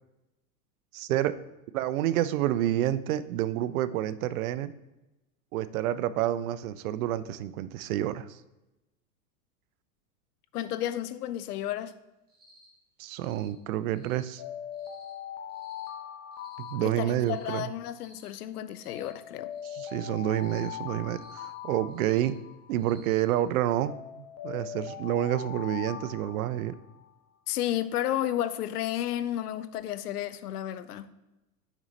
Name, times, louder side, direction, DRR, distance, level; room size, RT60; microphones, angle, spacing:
voice 1, 0.9-1.3 1.7-4.7 5.5-8.4 13.0-14.4 16.6-17.7 19.7-22.3 22.7-24.0 24.4-26.7, right 12 dB, 65° right, 0.6 m, -29 dB
voice 2, 10.5-11.9 16.8-19.5 27.5-31.1, left 12 dB, 80° left, 0.6 m, -32 dB
Cricket, 12.3-12.7 13.1-13.5 13.9-14.3 14.7-15.1 15.5-15.9 16.3-16.7 17.1-17.5 17.9-18.3 18.7-19.1 19.5-19.9 20.3-20.7 21.1-21.5 21.9-22.3 22.7-23.2, right 2 dB, 20° right, 2.4 m, -58 dB
Alarm, 14.4-17.7 18.9-22.7 23.9-27.1, left 9 dB, 35° left, 1.1 m, -41 dB
6.1 x 5.2 x 4.0 m
hypercardioid pair, 120°, 46 cm